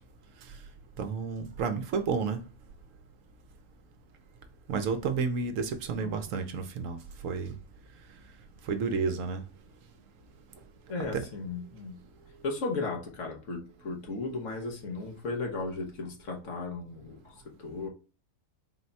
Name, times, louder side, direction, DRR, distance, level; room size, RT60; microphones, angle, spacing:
voice 1, 1.0-2.4 4.7-7.0 7.2-7.5 8.7-9.4 11.1-11.2, right 5 dB, 70° right, 0.9 m, -31 dB
voice 2, 10.9-12.0 12.4-17.9, left 3 dB, 65° left, 1.2 m, -35 dB
4.0 x 2.2 x 3.9 m
omnidirectional pair, 1.5 m